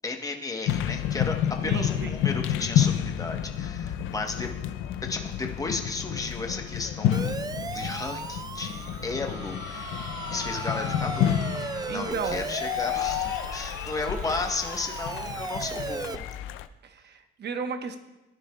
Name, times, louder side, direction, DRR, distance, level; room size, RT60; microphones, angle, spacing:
voice 1, 0.0-1.4 1.6-4.5 5.1-7.3 7.7-9.9 10.3-11.3 11.9-16.3, left 3 dB, 15° left, 3 dB, 1.0 m, -34 dB
sound 1, 0.7-16.7, left 11 dB, 90° left, 0.4 m, -30 dB
voice 2, 1.6-2.3 11.9-12.5 16.8-18.0, right 5 dB, 60° right, 7 dB, 1.0 m, -34 dB
Siren, 7.1-16.2, right 4 dB, 20° right, 0.4 m, -37 dB
sound 2, 8.4-12.7, left 5 dB, 65° left, 2.1 m, -42 dB
13.5 x 9.7 x 2.2 m, 1.0 s
cardioid pair, 90°, 20 cm